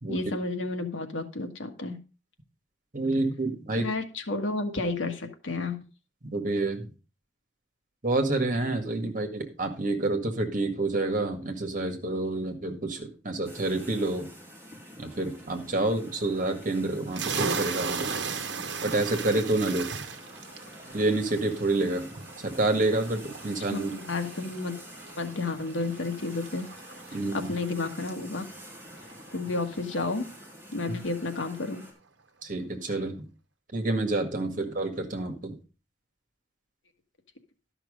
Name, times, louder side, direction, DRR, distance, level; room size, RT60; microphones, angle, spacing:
voice 1, 0.1-2.0 3.7-5.8 23.7-24.8 25.2-26.7 27.3-28.4 29.3-30.3 30.7-31.8, left 3 dB, 90° left, 6 dB, 1.6 m, -31 dB
voice 2, 2.9-3.9 6.3-6.9 8.0-14.3 15.0-18.1 18.8-19.9 20.9-22.1 22.4-23.9 27.1-27.5 32.4-33.3 33.7-35.6, right 2 dB, 45° right, 5 dB, 1.9 m, -28 dB
sound 1, 13.4-31.9, equal, 10° right, 3.4 m, -48 dB
sound 2, 17.1-30.5, right 5 dB, 65° right, 1.2 m, -38 dB
12.0 x 6.0 x 5.1 m, 0.33 s
head